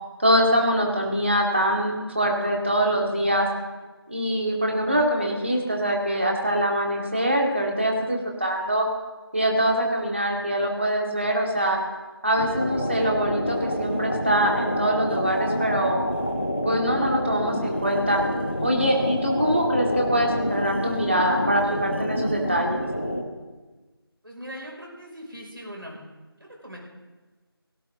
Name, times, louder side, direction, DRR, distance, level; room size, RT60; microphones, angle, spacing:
voice 1, 0.2-3.5 4.1-8.9 9.3-11.8 12.2-16.0 16.6-18.2 18.6-22.8, right 1 dB, 30° right, 0 dB, 2.2 m, -23 dB
sound 1, 12.4-23.2, equal, 25° left, 1.2 m, -28 dB
voice 2, 24.2-26.0 26.6-26.8, equal, 60° right, -1 dB, 6.0 m, -40 dB
17.0 x 17.0 x 3.8 m, 1.2 s
figure-of-eight pair, 175°, 13 cm